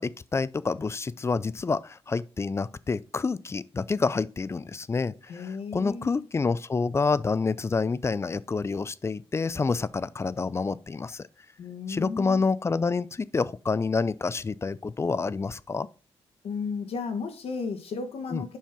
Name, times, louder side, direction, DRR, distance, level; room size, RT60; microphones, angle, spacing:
voice 1, 0.0-11.3 11.9-15.9 18.3-18.5, left 4 dB, 25° left, 0.4 m, -28 dB
voice 2, 5.3-6.3 11.6-12.5 16.4-18.6, left 5 dB, 80° left, 1.6 m, -34 dB
7.3 x 5.5 x 4.4 m
cardioid pair, 105°, 10 cm